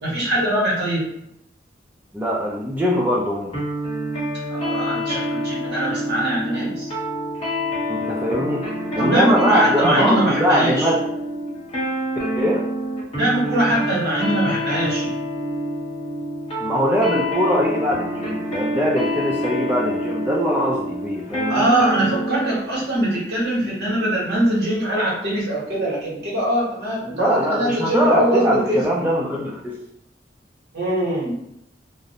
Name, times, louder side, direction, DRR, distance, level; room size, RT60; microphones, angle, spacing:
voice 1, 0.0-1.0 4.5-6.9 9.0-10.9 13.1-15.1 21.5-28.8 30.7-31.3, right 1 dB, 60° right, -5 dB, 1.1 m, -22 dB
voice 2, 2.1-3.5 7.9-11.0 12.3-12.6 16.6-21.7 27.0-29.8, equal, 10° right, -4 dB, 0.3 m, -22 dB
sound 1, 3.5-22.7, equal, 35° left, 0.8 m, -27 dB
2.4 x 2.0 x 2.7 m, 0.77 s
head